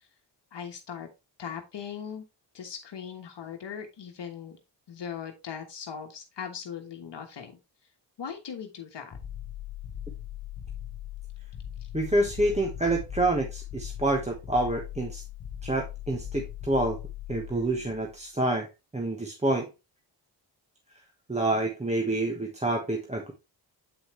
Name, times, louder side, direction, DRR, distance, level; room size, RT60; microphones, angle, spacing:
voice 1, 0.5-1.1 1.4-2.2 2.5-4.6 4.9-7.6 8.2-9.2, left 7 dB, 60° left, 4 dB, 1.3 m, -39 dB
sound 1, 9.1-18.2, left 11 dB, 45° left, 1.0 m, -40 dB
voice 2, 11.9-15.2 15.6-17.0 17.3-18.7 18.9-19.7 21.3-23.3, right 2 dB, 15° right, 2 dB, 1.1 m, -27 dB
8.1 x 4.9 x 3.1 m, 0.26 s
cardioid pair, 90°, 47 cm